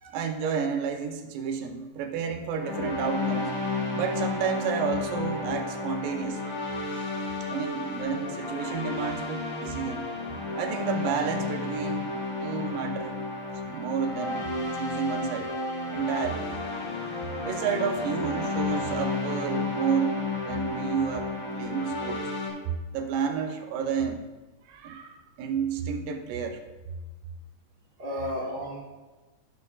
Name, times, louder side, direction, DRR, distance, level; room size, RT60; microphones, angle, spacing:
voice 1, 0.1-3.5 3.9-6.5 6.9-7.0 7.5-10.1 10.6-13.2 13.7-14.5 14.8-15.5 15.9-16.5 17.4-22.2 22.9-24.2 24.7-26.6, right 7 dB, 85° right, 4 dB, 2.4 m, -31 dB
sound 1, 2.5-22.5, left 3 dB, 40° left, 1.2 m, -32 dB
voice 2, 6.8-7.2 24.8-24.9 28.0-28.8, equal, 50° right, -5 dB, 1.2 m, -35 dB
13.0 x 6.4 x 2.4 m, 1.2 s
omnidirectional pair, 3.9 m